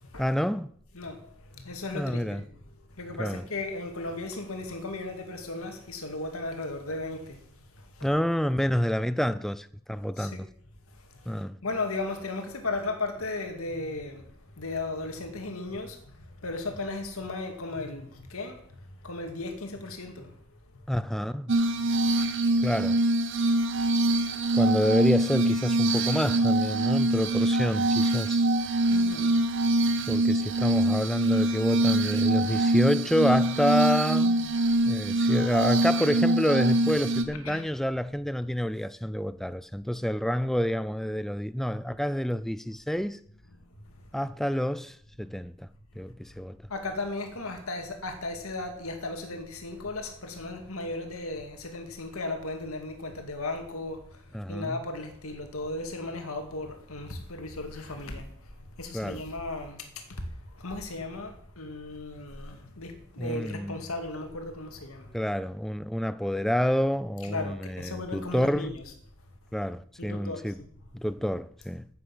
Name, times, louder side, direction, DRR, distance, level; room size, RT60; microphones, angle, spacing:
voice 1, 0.2-0.7 1.9-2.4 3.2-3.4 8.0-10.5 11.3-11.6 20.9-21.5 22.6-23.0 24.5-28.5 30.1-34.6 34.9-43.2 44.1-45.7 45.9-46.6 54.3-54.8 58.9-59.2 63.2-63.8 65.1-68.7 69.5-70.6 70.9-71.9, equal, ahead, 0.4 m, -28 dB
voice 2, 0.9-2.4 3.0-7.4 8.0-8.1 10.2-10.4 11.6-14.2 14.6-18.6 19.0-20.3 21.8-22.0 28.9-29.4 29.9-30.1 37.4-37.6 46.7-54.0 54.5-58.3 58.8-60.0 60.6-65.1 67.3-68.8 70.0-70.7, left 2 dB, 75° left, 2.3 m, -36 dB
Glass, 21.5-37.2, right 2 dB, 60° right, 1.1 m, -24 dB
10.0 x 8.5 x 7.9 m
head